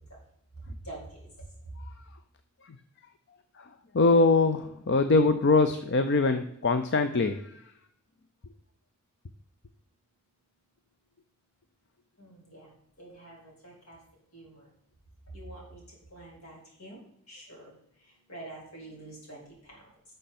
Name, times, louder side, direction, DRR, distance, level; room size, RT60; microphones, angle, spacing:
voice 1, 0.8-1.3 12.2-12.7 13.0-14.0 14.3-14.7 15.3-17.0 17.3-17.7 18.3-19.8, right 1 dB, 75° left, -3 dB, 4.1 m, -46 dB
voice 2, 3.6-7.6, left 3 dB, 50° left, 9 dB, 0.5 m, -23 dB
11.5 x 6.6 x 4.2 m, 0.76 s
head